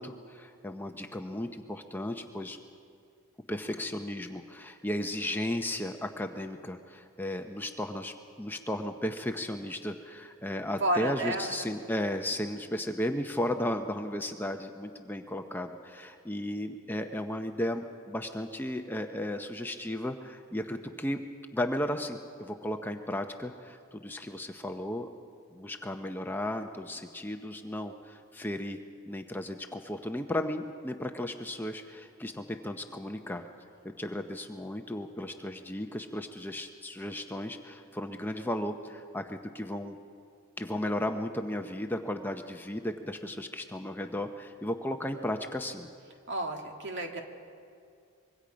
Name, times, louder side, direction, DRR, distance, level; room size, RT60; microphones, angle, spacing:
voice 1, 0.0-2.6 3.5-21.2 21.5-25.1 25.5-28.8 29.1-33.4 34.0-40.0 40.6-45.9, left 1 dB, 10° left, 5 dB, 0.6 m, -35 dB
voice 2, 10.8-11.7 46.3-47.2, right 1 dB, 55° right, 3 dB, 2.0 m, -31 dB
25.0 x 22.5 x 5.2 m, 2.4 s
head